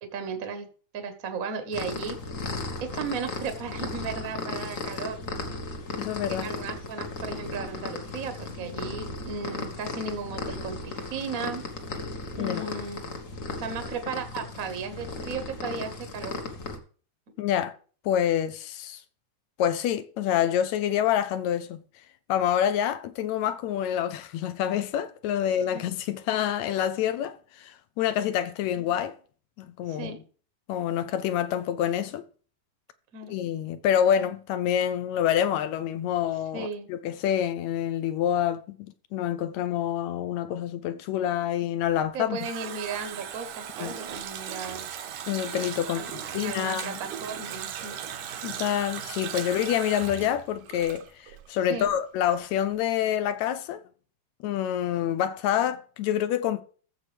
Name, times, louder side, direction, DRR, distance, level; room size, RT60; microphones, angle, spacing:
voice 1, 0.0-0.7 0.9-2.2 2.9-5.1 6.3-11.6 12.3-13.0 13.6-16.4 25.4-25.8 28.7-28.8 29.9-30.2 33.1-33.3 36.5-36.9 42.1-44.9 45.9-48.0 49.2-49.3 51.7-51.9, right 5 dB, 50° right, 1.0 m, -35 dB
sound 1, 1.7-16.8, left 3 dB, 55° left, 0.9 m, -36 dB
voice 2, 6.0-6.5 12.4-12.7 17.4-17.7 18.1-19.0 19.6-21.8 22.3-29.2 29.6-30.1 30.7-32.2 33.3-42.4 43.8-44.0 45.3-47.0 48.4-53.8 54.4-56.6, left 10 dB, 80° left, 1.9 m, -27 dB
Water tap faucet, 41.9-51.5 51.8-51.9, right 9 dB, 85° right, 2.4 m, -38 dB
14.5 x 7.1 x 3.3 m
omnidirectional pair, 3.3 m